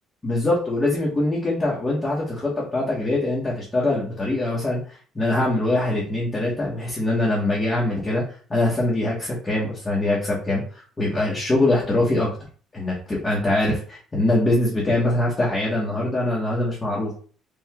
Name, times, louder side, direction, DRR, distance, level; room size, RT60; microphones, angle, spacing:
voice 1, 0.2-4.8 5.1-8.2 8.5-12.3 12.7-17.2, left 2 dB, 15° left, -6 dB, 1.1 m, -23 dB
4.7 x 2.5 x 3.5 m, 0.42 s
cardioid pair, 160°, 0 cm